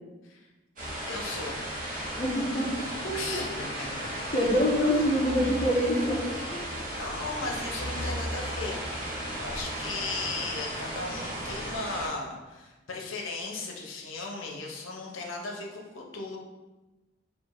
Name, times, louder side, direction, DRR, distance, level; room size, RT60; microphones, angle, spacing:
sound 1, 0.8-12.1, right 1 dB, 40° right, 0.8 m, -35 dB
voice 1, 1.1-1.7 3.1-4.3 6.4-16.4, left 3 dB, 90° left, 0 dB, 0.7 m, -37 dB
voice 2, 2.2-3.4 4.3-6.6, equal, 40° left, -4 dB, 0.6 m, -26 dB
3.0 x 2.4 x 3.7 m, 1.1 s
head